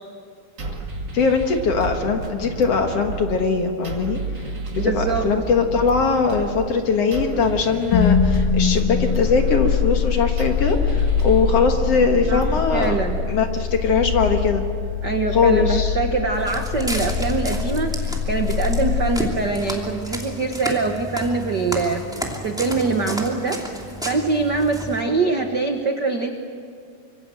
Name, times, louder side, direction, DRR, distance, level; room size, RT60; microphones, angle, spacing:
sound 1, 0.6-13.6, right 3 dB, 35° right, 2.6 m, -31 dB
voice 1, 1.1-4.2 4.7-13.0 13.3-14.6 15.3-16.0, left 5 dB, 55° left, 4 dB, 2.2 m, -21 dB
voice 2, 4.8-5.3 12.3-12.4 12.7-13.2 15.0-22.0 22.4-23.6 24.0-26.3, right 4 dB, 60° right, 4 dB, 1.1 m, -23 dB
sound 2, 7.9-20.0, left 7 dB, 75° left, 3.3 m, -23 dB
Walk footsteps, 16.3-25.0, equal, ahead, 2.1 m, -32 dB
25.5 x 25.0 x 7.8 m, 2.2 s
omnidirectional pair, 3.9 m